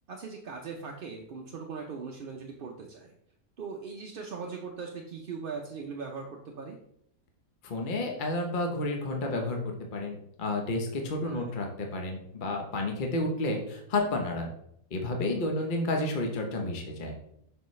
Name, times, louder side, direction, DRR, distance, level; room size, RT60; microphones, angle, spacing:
voice 1, 0.1-3.1 3.6-6.8 11.2-11.5 15.4-15.7, right 5 dB, 55° right, 1 dB, 0.6 m, -40 dB
voice 2, 7.6-14.5 14.9-17.1, left 2 dB, 40° left, 2 dB, 0.9 m, -31 dB
6.7 x 5.6 x 3.1 m, 0.73 s
omnidirectional pair, 1.5 m